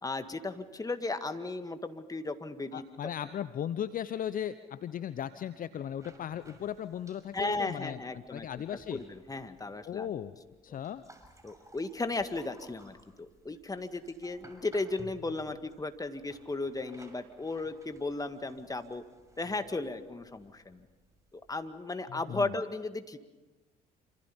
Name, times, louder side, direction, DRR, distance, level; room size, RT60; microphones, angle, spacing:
voice 1, 0.0-2.8 7.3-8.5 8.9-10.1 11.4-19.0 19.4-20.9 21.3-23.3, left 3 dB, 20° left, 9 dB, 1.9 m, -35 dB
voice 2, 2.7-8.0 8.3-9.0 9.8-10.3 10.6-11.0 22.1-22.5, left 9 dB, 45° left, 14 dB, 0.8 m, -37 dB
sound 1, 6.0-21.7, right 1 dB, 15° right, 6.0 m, -58 dB
27.0 x 27.0 x 5.5 m, 1.2 s
hypercardioid pair, 55°, 20 cm